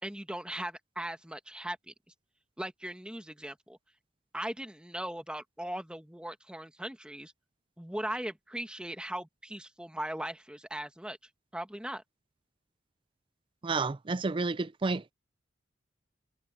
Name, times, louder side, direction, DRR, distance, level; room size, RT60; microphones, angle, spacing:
voice 1, 0.0-1.9 2.6-3.8 4.3-7.3 7.8-11.2 11.5-12.0, right 1 dB, 5° right, 1.3 m, -39 dB
voice 2, 13.6-15.0, right 3 dB, 25° right, 0.4 m, -30 dB
head